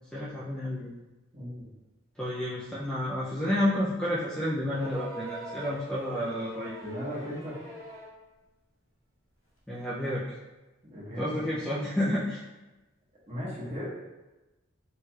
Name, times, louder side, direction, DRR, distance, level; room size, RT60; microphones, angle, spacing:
voice 1, 0.1-0.9 2.2-6.7 9.7-10.2 11.2-12.4, left 1 dB, 5° left, -7 dB, 0.4 m, -30 dB
voice 2, 1.3-1.7 6.8-7.6 10.8-11.6 13.3-13.9, equal, 30° right, -7 dB, 1.2 m, -37 dB
sound 1, 4.7-8.2 9.6-9.7, right 1 dB, 85° left, 1.1 m, -43 dB
4.4 x 3.1 x 2.3 m, 1.1 s
head